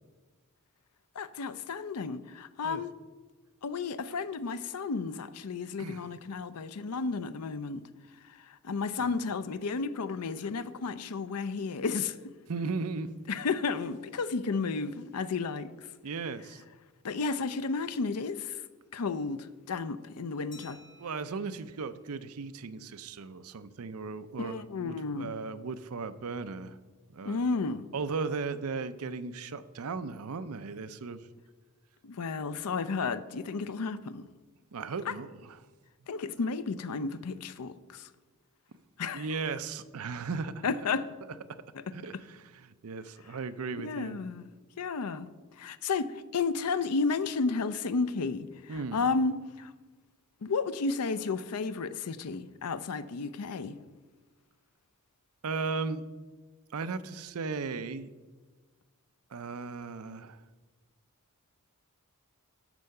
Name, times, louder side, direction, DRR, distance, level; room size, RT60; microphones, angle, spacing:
voice 1, 1.2-2.9 3.6-7.8 8.4-12.2 13.3-15.9 17.0-18.6 18.9-20.8 24.4-25.3 27.2-27.9 32.0-34.2 35.1-35.2 36.1-38.1 39.0-39.3 40.6-41.1 41.7-41.8 43.8-44.5 44.8-49.7 50.4-53.8, left 4 dB, 85° left, 0.6 m, -32 dB
voice 2, 12.5-13.1 16.0-16.6 21.0-26.8 27.1-27.4 27.9-31.2 34.7-35.6 39.1-40.7 41.9-44.2 48.7-49.0 55.4-56.0 56.7-58.1 59.3-60.4, right 4 dB, 70° right, 0.6 m, -36 dB
Glass, 20.5-23.0, left 2 dB, 55° left, 3.4 m, -58 dB
12.0 x 4.7 x 6.6 m
head